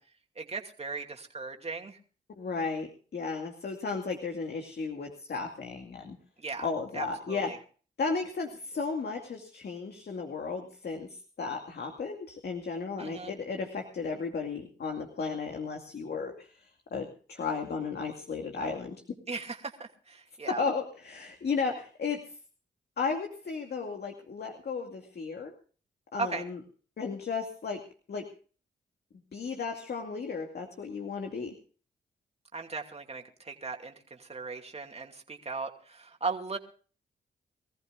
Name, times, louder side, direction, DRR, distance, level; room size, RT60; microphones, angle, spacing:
voice 1, 0.4-2.0 6.4-6.7 6.9-7.6 13.0-13.3 19.3-20.6 26.2-26.4 32.5-36.6, right 4 dB, 35° right, 3 dB, 2.7 m, -37 dB
voice 2, 2.4-6.2 6.6-7.5 8.0-18.9 20.5-22.4 23.0-25.5 26.1-26.6 27.0-27.8 28.1-28.3 29.3-31.5, left 4 dB, 60° left, 3 dB, 2.4 m, -34 dB
24.0 x 14.5 x 2.6 m, 0.40 s
supercardioid pair, 50°, 18 cm